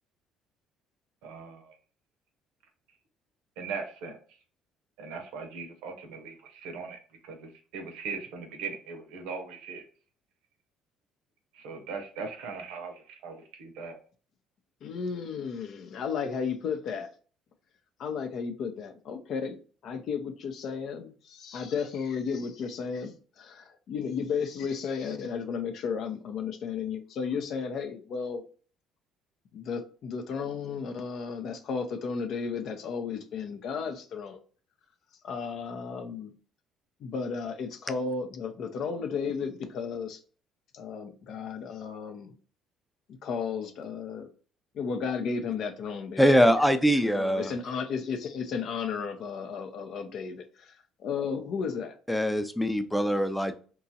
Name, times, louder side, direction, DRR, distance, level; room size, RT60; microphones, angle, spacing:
voice 1, 1.2-1.7 3.6-4.2 5.0-9.8 11.5-14.0, right 5 dB, 80° right, 5 dB, 0.6 m, -39 dB
voice 2, 14.8-17.1 18.0-28.4 29.5-34.4 35.2-36.3 37.0-40.2 40.7-42.3 43.1-44.3 44.7-46.2 47.1-50.7 51.0-51.9, left 6 dB, 65° left, 7 dB, 0.5 m, -34 dB
voice 3, 46.2-47.5 52.1-53.6, equal, 5° left, 9 dB, 0.4 m, -23 dB
2.9 x 2.3 x 2.7 m, 0.40 s
hypercardioid pair, 65°, 0 cm